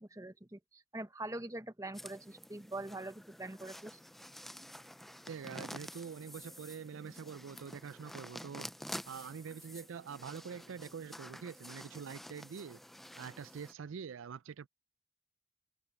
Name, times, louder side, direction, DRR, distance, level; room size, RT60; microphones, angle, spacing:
voice 1, 0.0-3.9, right 2 dB, 15° right, 1.0 m, -44 dB
sound 1, 1.9-13.7, equal, ahead, 0.3 m, -49 dB
voice 2, 5.2-8.7 9.1-12.8 13.2-14.7, right 6 dB, 85° right, 0.4 m, -45 dB
head